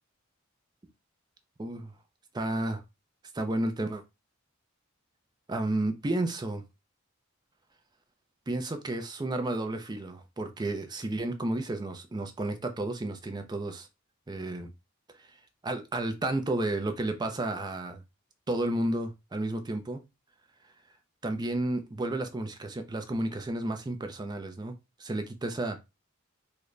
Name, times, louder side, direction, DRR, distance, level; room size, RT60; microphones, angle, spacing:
voice 1, 2.3-2.8 3.3-4.0 5.5-6.6 8.5-13.9 14.3-14.7 15.6-18.0 18.5-20.0 21.2-24.7 25.0-25.8, right 2 dB, 20° right, 0.4 m, -32 dB
3.7 x 2.1 x 3.1 m
head